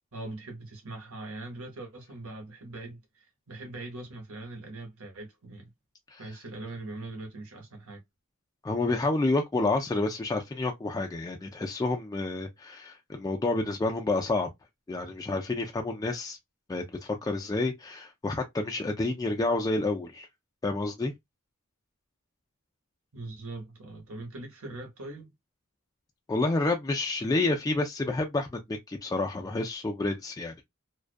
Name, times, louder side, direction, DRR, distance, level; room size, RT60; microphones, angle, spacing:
voice 1, 0.1-5.7 6.2-8.0 23.1-25.3, right 2 dB, 70° right, 0.9 m, -41 dB
voice 2, 8.6-14.5 14.9-16.4 16.7-20.3 20.6-21.1 26.3-30.6, left 2 dB, 15° left, 0.3 m, -29 dB
2.3 x 2.2 x 2.4 m
head